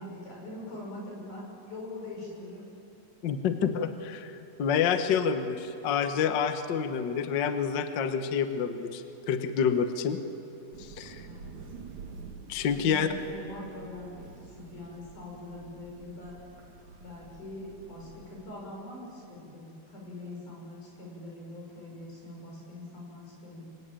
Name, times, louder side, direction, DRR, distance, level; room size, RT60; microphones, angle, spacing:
voice 1, 0.0-2.7 11.2-11.5 12.7-16.4 17.0-23.6, left 1 dB, 60° left, -3 dB, 8.0 m, -43 dB
voice 2, 3.2-10.2 10.8-11.2 12.5-13.1, left 7 dB, 80° left, 8 dB, 1.0 m, -28 dB
Thunder / Rain, 10.7-18.4, right 4 dB, 60° right, 2.9 m, -48 dB
27.0 x 23.5 x 9.0 m, 2.8 s
omnidirectional pair, 4.0 m